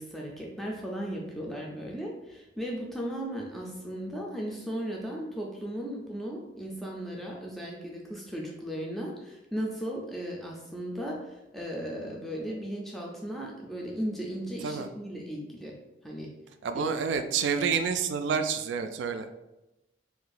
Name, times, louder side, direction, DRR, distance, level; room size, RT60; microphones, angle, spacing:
voice 1, 0.0-15.8 16.0-16.3 16.7-16.9, equal, ahead, -2 dB, 0.4 m, -36 dB
voice 2, 16.6-19.3, right 6 dB, 80° right, 8 dB, 0.3 m, -28 dB
2.8 x 2.5 x 4.0 m, 0.96 s
head